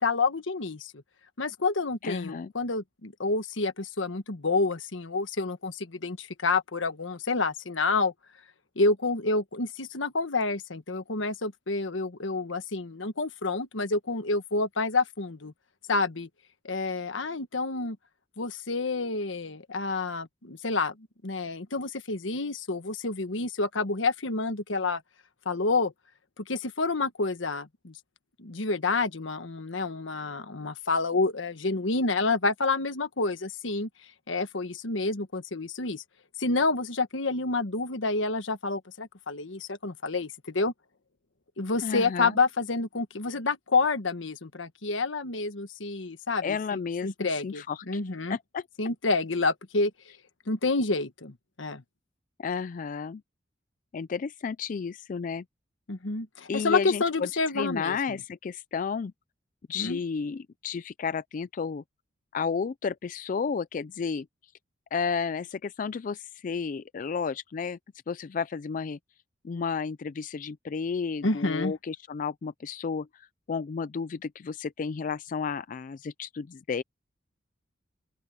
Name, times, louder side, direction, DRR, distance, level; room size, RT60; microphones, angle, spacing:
voice 1, 0.0-0.9 1.4-8.1 8.7-15.5 15.9-16.3 16.6-18.0 18.4-20.9 21.2-25.0 25.4-25.9 26.4-27.9 28.4-33.9 34.3-36.0 36.4-40.7 41.6-48.4 48.8-49.9 50.5-51.8 55.9-58.2 59.7-60.0 71.2-71.7, left 3 dB, 85° left, 1.4 m, -28 dB
voice 2, 2.0-2.5 41.8-42.4 46.4-48.0 48.3-48.6 52.4-53.2 53.9-55.4 56.5-59.1 59.7-61.8 62.3-64.3 64.9-67.8 68.1-69.0 69.4-76.8, left 5 dB, 45° left, 0.3 m, -32 dB
open air
head